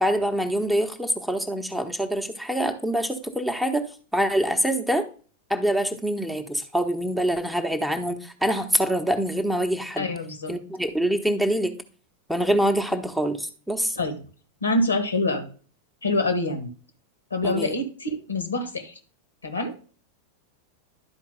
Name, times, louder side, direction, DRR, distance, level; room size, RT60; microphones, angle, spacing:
voice 1, 0.0-5.1 5.5-10.1 10.5-11.7 12.3-14.0 17.4-17.7, right 1 dB, ahead, 5 dB, 0.9 m, -25 dB
voice 2, 10.0-10.5 13.9-14.2 14.6-15.4 16.0-16.7 17.3-19.0 19.4-19.8, left 2 dB, 75° left, 8 dB, 1.5 m, -26 dB
11.5 x 4.6 x 3.6 m, 0.39 s
figure-of-eight pair, 90°, 0 cm